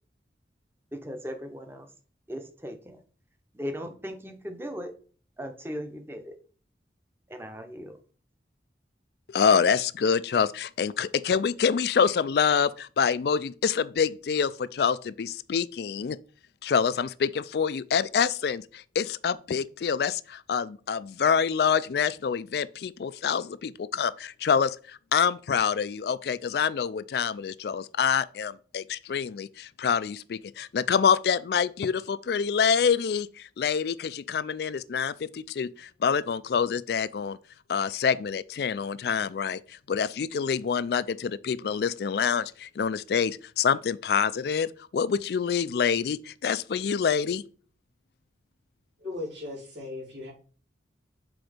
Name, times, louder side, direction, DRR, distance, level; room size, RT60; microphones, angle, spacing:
voice 1, 0.9-1.9 2.3-3.0 3.5-4.9 5.4-6.3 7.3-7.9, equal, 15° right, 0.8 m, -37 dB
voice 2, 9.3-16.2 16.6-37.4 37.7-47.4, left 6 dB, 60° left, 0.3 m, -26 dB
voice 3, 49.0-50.3, left 2 dB, 85° right, 3.7 m, -37 dB
6.1 x 3.9 x 5.0 m
head